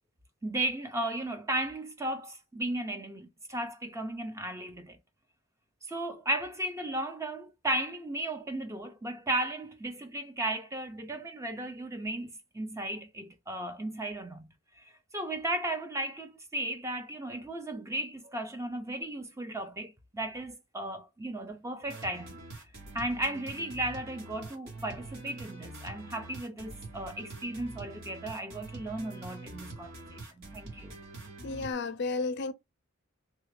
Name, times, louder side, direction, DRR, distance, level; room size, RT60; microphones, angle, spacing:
voice 1, 0.4-5.0 5.8-14.5 14.8-22.4 22.9-30.9, right 1 dB, 15° right, 0.4 m, -35 dB
sound 1, 21.9-31.7, right 2 dB, 60° right, 1.3 m, -45 dB
voice 2, 31.4-32.5, left 3 dB, 50° left, 0.4 m, -32 dB
3.2 x 2.4 x 3.2 m
head